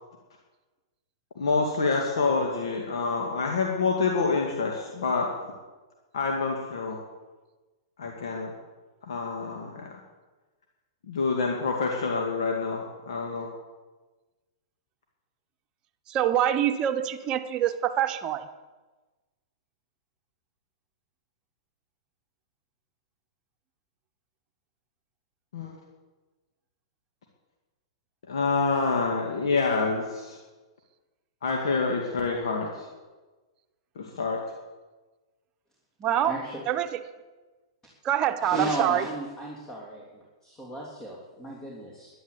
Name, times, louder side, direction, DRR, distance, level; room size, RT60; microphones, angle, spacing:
voice 1, 1.4-5.3 6.1-7.0 8.0-8.5 9.0-9.9 11.1-13.5 25.5-25.7 28.3-30.4 31.4-32.9 34.0-34.4, left 4 dB, 75° left, 1 dB, 2.2 m, -27 dB
voice 2, 16.1-18.5 36.0-36.3 36.7-37.0 38.0-39.1, right 11 dB, 30° right, 7 dB, 1.1 m, -25 dB
voice 3, 36.2-36.6 38.4-40.0 40.4-42.1, right 1 dB, 20° left, -2 dB, 3.0 m, -34 dB
11.0 x 11.0 x 8.1 m, 1.2 s
hypercardioid pair, 125°, 3 cm